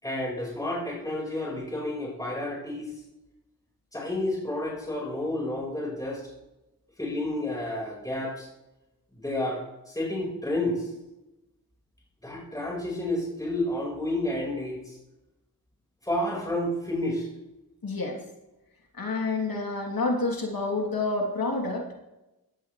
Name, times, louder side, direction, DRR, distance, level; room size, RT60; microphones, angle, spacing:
voice 1, 0.0-2.9 3.9-6.2 7.0-8.5 9.2-10.9 12.2-15.0 16.0-17.3, left 1 dB, 10° left, -3 dB, 4.8 m, -30 dB
voice 2, 17.8-18.2 18.9-21.9, left 3 dB, 70° left, -1 dB, 3.0 m, -28 dB
15.5 x 12.5 x 3.3 m, 0.95 s
cardioid pair, 45°, 36 cm